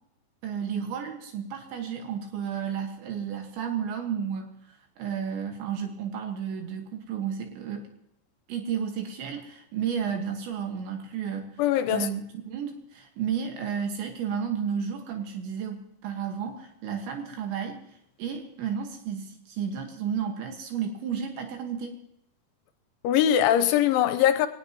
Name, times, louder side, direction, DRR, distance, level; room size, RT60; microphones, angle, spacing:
voice 1, 0.4-7.9 8.5-11.6 11.9-17.8 18.2-21.9, right 7 dB, 75° right, 3.8 m, -32 dB
voice 2, 11.6-12.1 23.0-24.5, left 11 dB, 85° left, 3.2 m, -21 dB
23.5 x 18.5 x 3.0 m
omnidirectional pair, 5.4 m